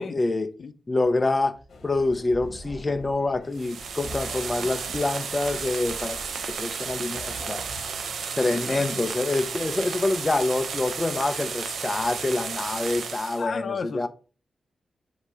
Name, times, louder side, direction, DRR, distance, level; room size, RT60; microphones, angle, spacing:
voice 1, 0.0-0.5 0.9-1.6 1.8-6.2 6.6-7.6 8.4-14.1, left 2 dB, 20° left, 0.7 m, -26 dB
sound 1, 1.6-8.1, right 1 dB, 35° right, 1.2 m, -43 dB
sound 2, 1.7-13.2, left 4 dB, 70° left, 1.3 m, -50 dB
sound 3, 3.5-13.4, right 6 dB, 85° right, 0.7 m, -33 dB
voice 2, 8.5-8.9 13.4-14.1, left 5 dB, 55° left, 0.8 m, -33 dB
7.9 x 2.8 x 5.0 m
wide cardioid pair, 145°, 0 cm